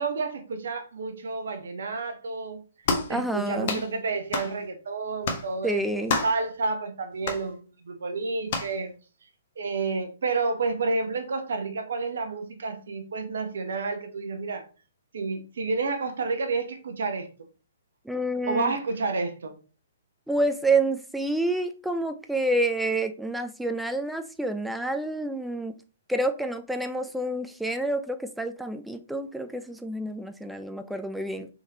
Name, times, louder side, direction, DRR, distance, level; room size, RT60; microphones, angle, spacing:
voice 1, 0.0-2.6 3.1-8.9 9.6-14.6 15.1-17.3 18.4-19.6, right 3 dB, 65° right, 0.7 m, -30 dB
sound 1, 2.8-3.1 3.6-3.9 4.3-4.5 5.2-5.5 6.1-6.4 7.2-7.4 8.5-8.7, left 4 dB, 50° left, 0.7 m, -28 dB
voice 2, 3.1-3.8 5.6-6.2 18.1-18.7 20.3-25.7 26.1-31.5, right 2 dB, ahead, 0.3 m, -28 dB
3.5 x 3.1 x 2.7 m
figure-of-eight pair, 125°, 0 cm